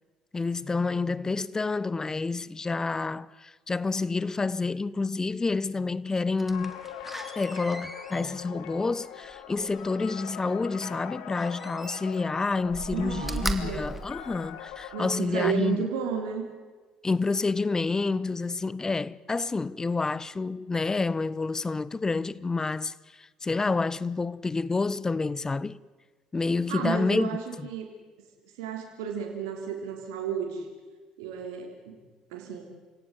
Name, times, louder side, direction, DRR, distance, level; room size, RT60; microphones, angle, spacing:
voice 1, 0.3-6.8 7.4-15.8 17.0-25.8 26.3-27.7, left 3 dB, 25° left, 0.9 m, -29 dB
Slam, 6.4-10.2 11.3-12.3 12.6-14.9 15.4-15.5, right 1 dB, 10° right, 2.8 m, -38 dB
sound 1, 6.5-15.2, left 10 dB, 70° left, 2.0 m, -42 dB
voice 2, 12.9-13.9 14.9-16.4 26.7-27.9 28.6-30.7 31.2-32.0 32.3-32.6, right 7 dB, 75° right, 3.4 m, -32 dB
28.0 x 17.5 x 9.7 m
hypercardioid pair, 60°, 3 cm